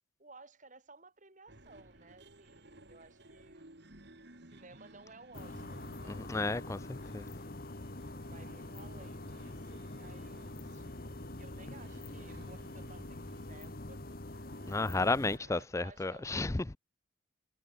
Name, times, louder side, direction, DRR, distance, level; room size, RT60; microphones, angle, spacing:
voice 1, 0.2-3.7 4.3-6.7 7.3-7.6 8.3-10.9 11.4-16.4, right 3 dB, 40° right, 4.4 m, -58 dB
sound 1, 1.5-15.7, right 1 dB, 55° right, 3.4 m, -58 dB
sound 2, 5.3-15.4, left 2 dB, 45° left, 1.6 m, -45 dB
voice 2, 6.3-7.3 14.7-16.8, left 3 dB, 15° left, 0.4 m, -33 dB
head